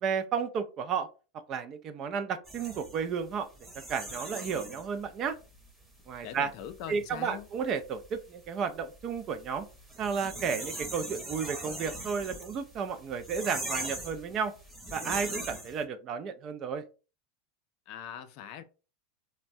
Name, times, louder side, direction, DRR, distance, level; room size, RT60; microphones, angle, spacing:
voice 1, 0.0-1.1 1.5-3.5 3.9-5.4 6.1-6.5 6.9-9.7 10.0-14.5 14.9-16.8, right 6 dB, 40° right, 0.4 m, -32 dB
sound 1, 2.5-15.8, right 1 dB, 5° right, 0.9 m, -41 dB
voice 2, 6.2-7.5 17.9-18.6, left 9 dB, 55° left, 0.4 m, -42 dB
3.3 x 2.1 x 2.5 m
supercardioid pair, 125°, 0 cm